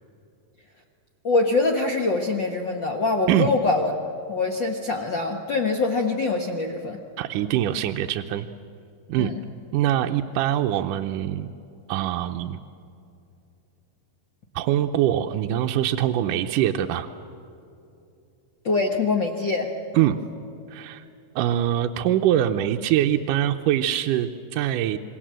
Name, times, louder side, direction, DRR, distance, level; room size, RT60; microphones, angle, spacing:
voice 1, 1.2-3.9 4.3-7.0 9.2-9.4 18.6-19.7, left 3 dB, 80° left, 3 dB, 1.0 m, -24 dB
voice 2, 7.2-8.5 9.1-9.3 9.7-11.5 11.9-12.6 14.6-17.1 19.9-20.2 20.7-21.0 21.4-25.0, right 12 dB, 75° right, 5 dB, 2.0 m, -23 dB
27.0 x 22.5 x 7.6 m, 2.7 s
omnidirectional pair, 4.2 m